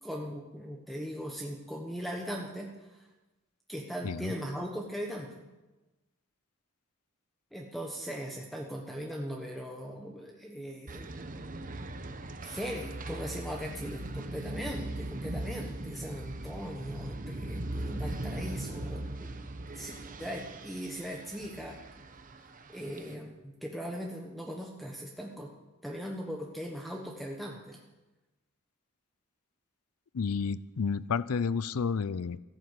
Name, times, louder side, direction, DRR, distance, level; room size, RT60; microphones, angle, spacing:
voice 1, 0.0-3.1 3.7-5.4 7.5-11.1 12.4-19.4 19.7-21.8 22.7-25.5 25.8-27.8, equal, ahead, 0 dB, 1.2 m, -39 dB
voice 2, 4.0-4.3 30.1-32.4, left 5 dB, 85° left, 18 dB, 0.5 m, -31 dB
sound 1, 10.9-23.1, right 1 dB, 40° right, 1.1 m, -39 dB
15.0 x 11.5 x 8.1 m, 1.1 s
head